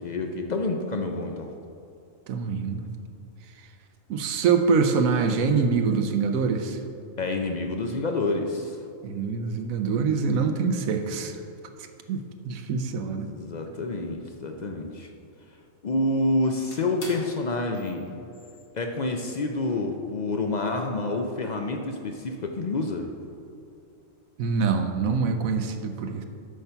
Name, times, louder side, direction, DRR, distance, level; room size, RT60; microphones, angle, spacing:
voice 1, 0.0-1.5 7.2-8.8 13.2-15.1 15.8-18.2 18.7-23.1, left 2 dB, 60° left, 4 dB, 0.4 m, -28 dB
voice 2, 2.3-2.9 4.1-6.8 9.0-11.3 12.1-12.2 12.4-13.3 24.4-26.2, right 5 dB, 90° right, 6 dB, 1.1 m, -25 dB
sound 1, 16.2-16.3 16.5-19.2 19.7-19.8 20.2-21.8 22.4-22.7, left 1 dB, 80° left, 2.1 m, -47 dB
8.1 x 5.8 x 5.5 m, 2.5 s
omnidirectional pair, 1.4 m